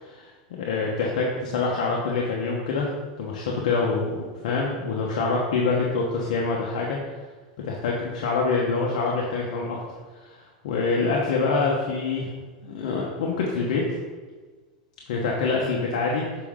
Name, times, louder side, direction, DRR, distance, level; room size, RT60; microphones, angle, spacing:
voice 1, 0.0-2.9 3.2-7.0 7.6-9.8 10.1-12.3 12.6-13.8 15.1-16.2, left 4 dB, 75° left, -2 dB, 1.0 m, -26 dB
6.8 x 5.0 x 3.7 m, 1.3 s
supercardioid pair, 130°, 4 cm